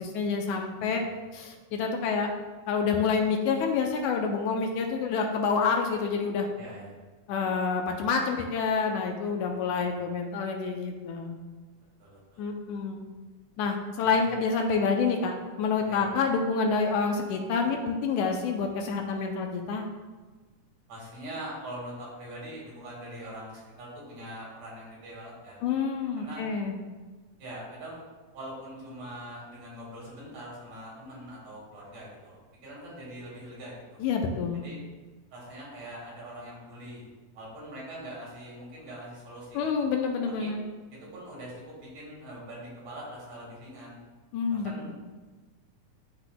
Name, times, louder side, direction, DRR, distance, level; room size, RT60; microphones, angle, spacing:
voice 1, 0.0-1.0 1.3-2.3 2.7-6.5 7.3-11.4 12.4-13.0 13.6-19.9 25.6-26.8 34.0-34.6 39.5-40.7 44.3-44.9, left 5 dB, 80° left, 2 dB, 2.0 m, -28 dB
voice 2, 6.6-6.9 9.7-9.9 12.0-12.4 14.0-14.3 15.9-16.0 20.9-25.6 26.2-26.4 27.4-28.0 28.3-34.0 34.6-34.8 35.3-37.0 37.3-39.8 40.4-40.5 41.1-44.0 44.5-44.9, right 1 dB, 60° right, -5 dB, 2.9 m, -43 dB
11.5 x 3.9 x 2.2 m, 1.3 s
omnidirectional pair, 3.6 m